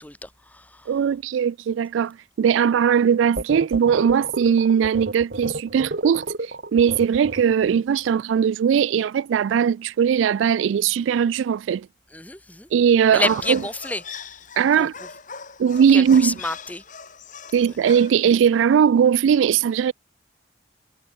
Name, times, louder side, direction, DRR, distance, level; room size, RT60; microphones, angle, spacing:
voice 1, 0.0-0.9 12.1-12.7 13.1-14.0 14.8-14.9 15.9-16.8 17.6-17.7, left 2 dB, 10° left, 3.3 m, -29 dB
voice 2, 0.9-11.9 12.7-13.6 14.6-14.9 15.6-16.3 17.5-19.9, right 7 dB, 85° right, 0.3 m, -19 dB
sound 1, 3.4-7.8, right 2 dB, 55° right, 1.4 m, -31 dB
sound 2, 13.3-18.4, left 5 dB, 40° left, 2.0 m, -40 dB
head